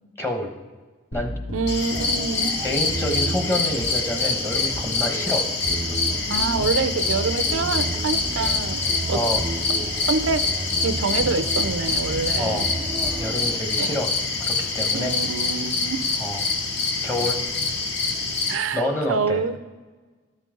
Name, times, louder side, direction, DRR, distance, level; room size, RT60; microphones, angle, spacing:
voice 1, 0.2-0.5 1.1-1.3 2.6-5.5 9.1-9.5 12.4-12.7 13.2-14.1 14.5-15.2 16.2-16.5 17.0-17.4 18.7-19.4, left 1 dB, 10° left, 3 dB, 0.9 m, -27 dB
sound 1, 1.1-3.2, left 1 dB, 80° left, 2.6 m, -36 dB
voice 2, 1.5-2.5 6.3-8.8 9.1-9.2 10.1-10.4 10.8-12.7 13.8-13.9 14.9-16.0 18.5-18.8 19.1-19.6, right 4 dB, 80° right, 11 dB, 0.5 m, -26 dB
sound 2, 1.7-18.5, left 4 dB, 55° left, 1.2 m, -25 dB
sound 3, 1.9-13.6, right 2 dB, 15° right, 0.4 m, -33 dB
13.5 x 5.3 x 3.8 m, 1.3 s
head